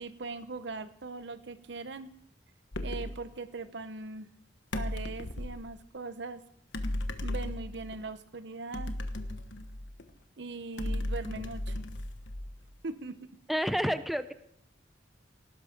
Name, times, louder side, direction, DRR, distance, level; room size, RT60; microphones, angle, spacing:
voice 1, 0.0-2.1 2.8-4.3 4.7-6.4 7.2-9.0 10.4-11.8 12.8-13.2, right 3 dB, 65° right, 13 dB, 0.8 m, -40 dB
sound 1, 2.7-3.2 4.7-5.7 6.7-8.0 8.7-10.1 10.8-12.7, left 1 dB, 75° left, 1.2 m, -35 dB
voice 2, 13.5-14.3, equal, ahead, 11 dB, 0.5 m, -29 dB
18.5 x 11.0 x 5.1 m, 0.75 s
head